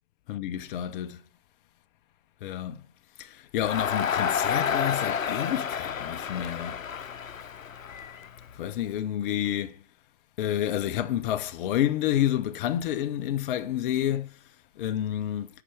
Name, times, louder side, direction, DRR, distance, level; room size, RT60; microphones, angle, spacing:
voice 1, 0.3-1.2 2.4-2.8 3.2-6.8 8.6-9.8 10.4-14.4 14.8-15.5, left 11 dB, 40° left, 0.7 m, -29 dB
Crowd, 3.6-8.8, left 7 dB, 85° left, 0.7 m, -30 dB
8.4 x 5.8 x 6.9 m
figure-of-eight pair, 115°, 39 cm